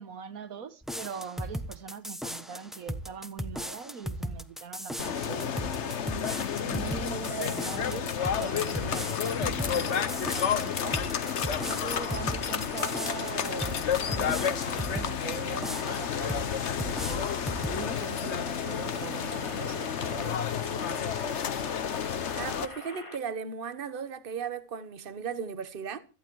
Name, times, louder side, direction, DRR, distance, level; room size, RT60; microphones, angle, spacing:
voice 1, 0.0-6.0 6.5-11.0 11.6-17.3 17.6-20.3 20.6-21.2, right 6 dB, 90° right, 1.7 m, -41 dB
sound 1, 0.8-15.1 15.6-16.5 16.8-17.8, equal, ahead, 0.9 m, -37 dB
sound 2, 5.0-22.7, left 8 dB, 60° left, 1.2 m, -31 dB
sound 3, 8.2-23.2, left 2 dB, 20° left, 2.2 m, -45 dB
voice 2, 22.3-26.0, right 6 dB, 40° right, 1.3 m, -36 dB
17.0 x 14.0 x 4.7 m
omnidirectional pair, 1.4 m